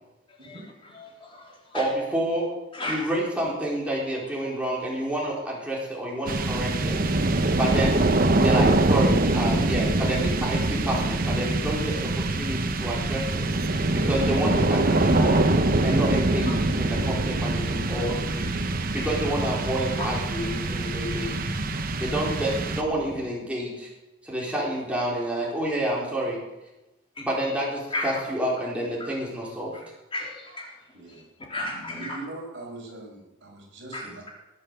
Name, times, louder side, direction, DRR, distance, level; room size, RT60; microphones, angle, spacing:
voice 1, 0.3-1.9 2.7-3.1 4.4-4.5 15.7-15.9 16.4-16.6 20.0-20.1 20.7-20.8 27.2-27.3 27.9-28.2 29.0-29.1 29.7-32.2 33.9-34.3, left 2 dB, 25° left, -2 dB, 3.6 m, -35 dB
voice 2, 1.7-2.5 2.9-7.0 7.5-8.0 8.4-13.5 13.9-15.4 15.8-18.5 18.9-21.4 22.0-23.9 24.2-26.4 27.2-29.7, right 1 dB, 5° right, -5 dB, 4.2 m, -29 dB
sound 1, 6.3-23.2, right 2 dB, 45° right, 0.9 m, -24 dB
voice 3, 18.5-18.8 30.9-31.2 31.9-34.2, right 2 dB, 60° right, -1 dB, 5.3 m, -41 dB
20.5 x 7.9 x 6.8 m, 1.0 s
head